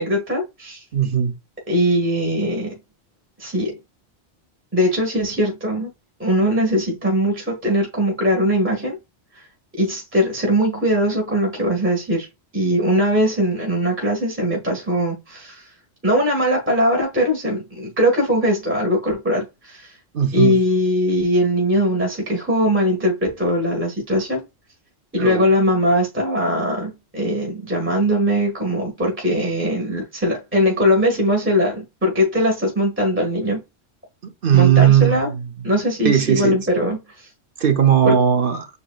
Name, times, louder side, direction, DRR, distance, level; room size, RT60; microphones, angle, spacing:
voice 1, 0.0-0.8 1.7-2.7 3.4-3.8 4.7-5.9 6.2-9.0 9.3-9.4 9.8-12.3 12.5-15.7 16.0-20.0 20.3-24.4 25.1-33.6 34.5-35.3 35.6-37.3 38.0-38.2, equal, 10° right, 1.5 m, -20 dB
voice 2, 0.9-1.3 20.1-20.6 25.2-25.5 34.2-35.5 36.0-36.7 37.6-38.7, right 9 dB, 55° right, 0.9 m, -17 dB
7.9 x 2.8 x 2.4 m
omnidirectional pair, 1.2 m